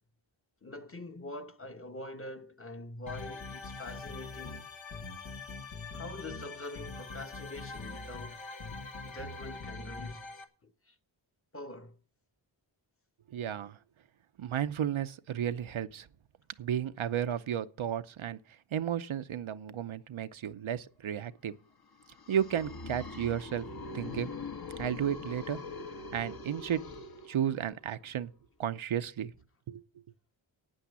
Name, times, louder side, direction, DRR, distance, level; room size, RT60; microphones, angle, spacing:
voice 1, 0.6-4.8 5.9-8.5 9.0-10.9 11.5-12.0, left 2 dB, 30° left, 1.1 m, -44 dB
sound 1, 3.1-10.4, left 3 dB, 80° left, 1.5 m, -43 dB
voice 2, 13.3-13.8 14.4-16.1 16.6-18.4 18.7-21.5 22.3-23.7 23.9-24.3 24.8-25.6 26.1-26.8 27.3-28.3 28.6-29.3 29.7-29.8, right 9 dB, 85° right, 0.8 m, -33 dB
sound 2, 21.9-27.8, left 3 dB, 50° left, 1.3 m, -43 dB
9.2 x 8.8 x 8.2 m
wide cardioid pair, 60°, 46 cm